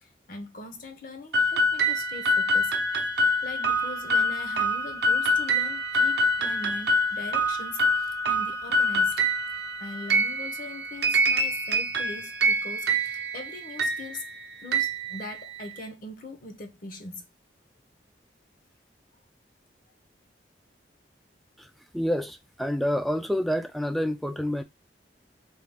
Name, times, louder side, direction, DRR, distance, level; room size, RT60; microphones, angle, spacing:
voice 1, 0.0-3.1 3.4-9.2 9.8-14.2 14.6-17.3, left 2 dB, 50° left, 0.7 m, -41 dB
sound 1, 1.3-15.8, equal, 65° right, 0.6 m, -26 dB
voice 2, 21.6-24.6, equal, ahead, 0.3 m, -28 dB
3.5 x 2.3 x 3.3 m
head